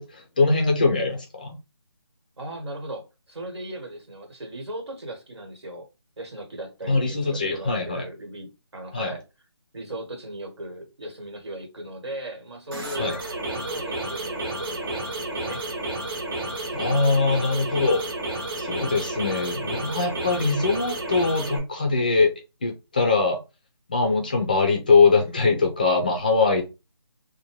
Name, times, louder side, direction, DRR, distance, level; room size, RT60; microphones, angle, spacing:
voice 1, 0.0-1.6 6.9-8.1 8.9-9.1 13.0-13.2 16.7-18.1 18.6-22.3 22.6-23.4 23.9-26.6, left 4 dB, 20° left, 0.4 m, -22 dB
voice 2, 2.4-5.9 6.2-9.2 9.7-13.2 13.5-15.6, right 1 dB, 75° right, 1.3 m, -37 dB
sound 1, 12.7-21.6, right 2 dB, 55° right, 1.1 m, -31 dB
2.7 x 2.2 x 3.0 m
figure-of-eight pair, 170°, 14 cm